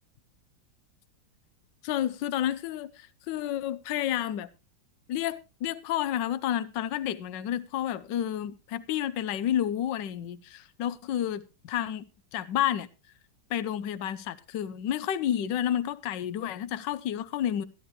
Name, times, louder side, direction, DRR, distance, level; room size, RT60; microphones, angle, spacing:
voice 1, 1.8-4.5 5.1-12.1 12.3-12.9 13.5-17.7, left 11 dB, 75° left, 1.4 m, -30 dB
13.5 x 13.0 x 3.1 m
omnidirectional pair, 2.0 m